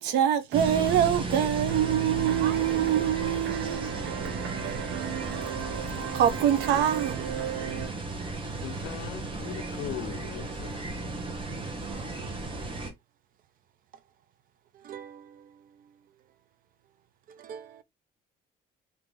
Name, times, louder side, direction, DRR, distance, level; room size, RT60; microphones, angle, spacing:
voice 1, 0.0-7.9, right 10 dB, 85° right, 0.9 m, -26 dB
sound 1, 0.5-12.9, right 2 dB, 30° right, 1.2 m, -35 dB
voice 2, 8.6-10.8, left 16 dB, 80° left, 0.5 m, -39 dB
voice 3, 11.9-12.3 14.7-15.6 17.3-17.8, right 8 dB, 55° right, 0.7 m, -45 dB
3.7 x 2.9 x 3.3 m
cardioid pair, 110°, 17 cm